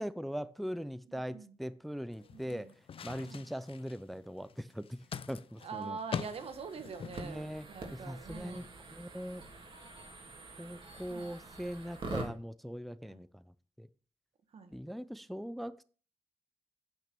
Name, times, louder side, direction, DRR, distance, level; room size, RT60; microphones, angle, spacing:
voice 1, 0.0-2.7 3.0-5.0 5.3-6.0 7.2-8.7 8.9-9.4 10.6-13.9 14.7-15.8, equal, ahead, 0.4 m, -41 dB
voice 2, 1.1-1.6 2.2-2.7 3.2-3.5 5.6-8.6 11.1-11.3 13.0-13.2 14.5-14.7, right 5 dB, 70° right, 1.5 m, -45 dB
sound 1, 2.1-7.4, left 7 dB, 65° left, 0.6 m, -44 dB
sound 2, 6.2-12.3, right 2 dB, 55° right, 3.0 m, -45 dB
9.0 x 5.9 x 6.0 m
cardioid pair, 80°, 10 cm